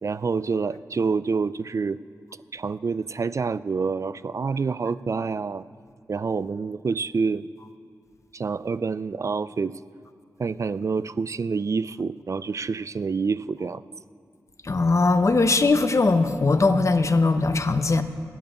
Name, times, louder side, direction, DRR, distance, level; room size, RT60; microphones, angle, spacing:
voice 1, 0.0-2.0 2.5-5.7 6.1-7.5 8.3-9.8 10.4-13.8, right 5 dB, 50° right, 16 dB, 0.4 m, -27 dB
voice 2, 14.6-18.0, left 3 dB, 45° left, 9 dB, 0.8 m, -20 dB
14.0 x 7.0 x 9.3 m, 2.3 s
cardioid pair, 45°, 7 cm